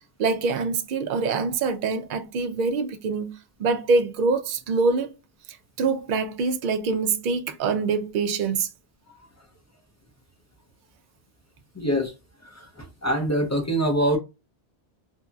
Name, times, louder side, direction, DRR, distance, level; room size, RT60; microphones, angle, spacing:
voice 1, 0.2-3.3 3.6-5.1 5.8-8.7, right 4 dB, 60° right, 0.6 m, -24 dB
voice 2, 11.7-12.1 12.4-14.2, right 1 dB, 20° left, 0.4 m, -25 dB
2.7 x 2.7 x 2.2 m
omnidirectional pair, 1.1 m